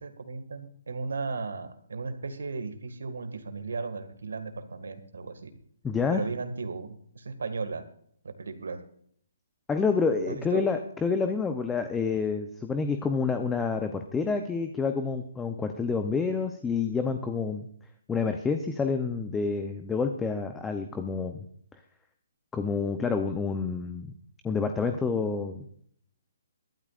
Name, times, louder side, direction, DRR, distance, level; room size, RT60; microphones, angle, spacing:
voice 1, 0.0-5.5 6.1-7.8 8.2-8.8 10.3-10.6, right 4 dB, 85° right, 8 dB, 1.9 m, -35 dB
voice 2, 5.8-6.2 9.7-17.7 18.1-21.4 22.5-24.1 24.4-25.7, left 5 dB, 10° left, 7 dB, 0.6 m, -28 dB
22.0 x 12.5 x 2.5 m, 0.63 s
hypercardioid pair, 165°, 0 cm